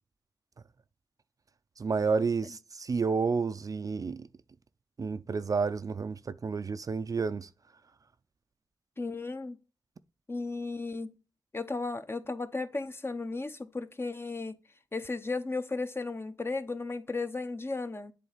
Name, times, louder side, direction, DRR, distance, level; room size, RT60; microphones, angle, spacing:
voice 1, 1.8-4.3 5.0-7.5, right 5 dB, 45° right, 0.4 m, -30 dB
voice 2, 9.0-9.6 10.3-11.1 11.5-14.6 14.9-18.1, left 3 dB, 30° left, 0.7 m, -35 dB
7.7 x 3.4 x 3.9 m
cardioid pair, 60°, 8 cm